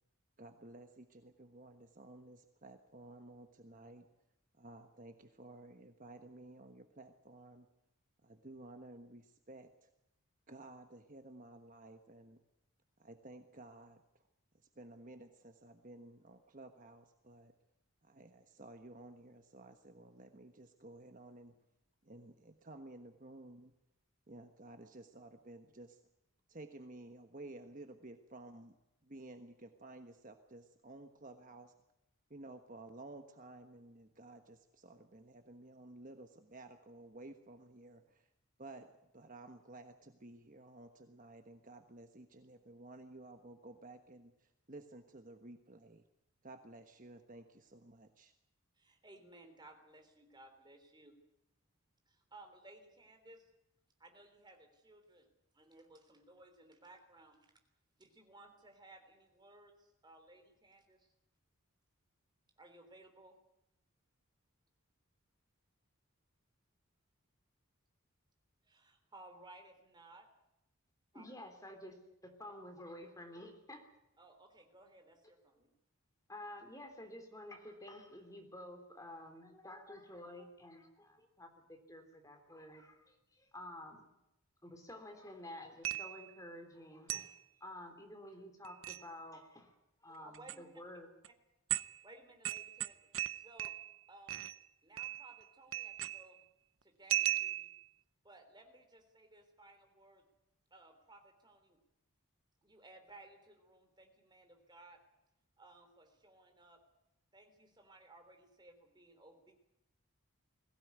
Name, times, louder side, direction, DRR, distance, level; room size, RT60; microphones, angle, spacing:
voice 1, 0.4-4.1 4.5-7.7 8.2-9.9 10.5-12.4 13.0-14.0 14.7-17.5 18.0-21.5 22.0-23.7 24.3-26.0 26.5-28.8 29.0-31.8 32.3-38.3 38.6-46.1 46.4-48.3, right 2 dB, 35° right, 6 dB, 1.3 m, -54 dB
voice 2, 48.8-51.2 52.1-53.5 54.0-55.3 55.5-57.5 58.0-61.1 62.6-63.4 68.6-70.3 71.1-71.3 74.2-75.7 90.2-90.6 92.0-93.0 93.4-93.7 94.1-94.4 94.8-96.4 96.8-97.7 98.2-100.2 100.7-101.8 102.6-105.0 105.6-106.8 107.3-109.5, right 2 dB, 20° right, 5 dB, 3.4 m, -59 dB
voice 3, 71.1-72.0 72.2-73.8 76.3-84.1 84.6-87.3 87.6-89.7 90.0-91.1, left 1 dB, 15° left, 4 dB, 3.4 m, -51 dB
sound 1, 85.9-86.3 87.1-87.4 88.6-89.1 90.3-90.6 91.2-91.3 91.7-92.0 92.5-94.0 94.3-94.6 95.0-95.4 95.7-96.4 97.1-97.8, right 12 dB, 65° right, 0.7 m, -37 dB
22.0 x 16.5 x 9.4 m, 0.88 s
head